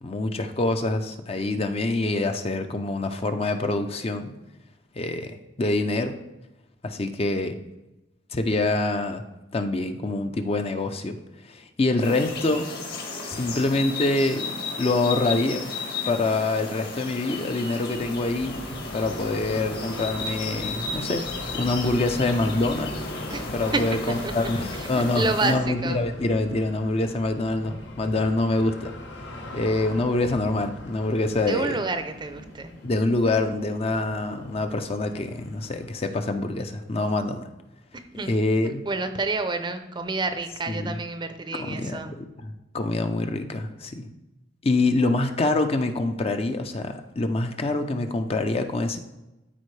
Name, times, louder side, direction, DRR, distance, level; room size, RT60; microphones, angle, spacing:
voice 1, 0.0-4.3 5.0-6.2 6.8-7.6 8.3-9.2 9.5-11.1 11.5-12.7 13.3-15.7 16.1-18.7 18.9-21.3 21.5-23.0 23.5-24.0 24.3-28.9 29.5-31.8 32.8-37.4 38.1-38.8 40.7-40.9 41.5-44.1 44.6-49.0, left 2 dB, 35° left, 7 dB, 0.5 m, -25 dB
sound 1, 12.0-25.5, left 3 dB, 60° left, 1.8 m, -34 dB
sound 2, 17.9-35.9, left 1 dB, 80° left, 1.2 m, -39 dB
voice 2, 24.1-26.0 31.5-32.7 37.9-38.3 38.6-42.2, right 3 dB, 25° right, 8 dB, 0.6 m, -29 dB
12.5 x 4.4 x 3.2 m, 1.0 s
head